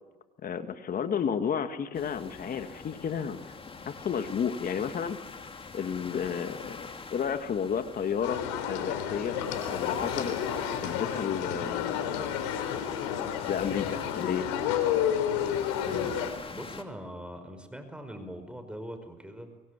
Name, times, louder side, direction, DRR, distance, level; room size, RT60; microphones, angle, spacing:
voice 1, 0.4-3.6 3.9-5.2 5.7-8.4 8.7-9.4 9.7-10.4 10.8-12.2 13.5-14.5, left 7 dB, 45° left, 9 dB, 2.1 m, -32 dB
sound 1, 1.9-16.8, left 4 dB, 25° left, 3.1 m, -45 dB
sound 2, 8.2-16.3, left 9 dB, 90° left, 3.8 m, -31 dB
voice 2, 16.5-19.5, equal, 5° right, 8 dB, 5.2 m, -41 dB
25.0 x 23.0 x 8.4 m, 1.2 s
supercardioid pair, 80°, 20 cm